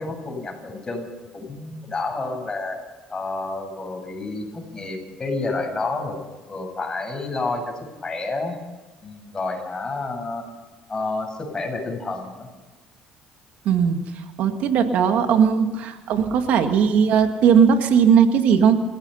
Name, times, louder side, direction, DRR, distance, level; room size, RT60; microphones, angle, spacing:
voice 1, 0.0-2.8 3.1-6.2 6.5-8.6 9.0-10.5 10.9-12.5, left 3 dB, 25° left, 2 dB, 7.3 m, -29 dB
voice 2, 13.7-18.8, right 7 dB, 70° right, 6 dB, 2.0 m, -18 dB
29.5 x 15.5 x 5.7 m, 1.2 s
cardioid pair, 105°, 3 cm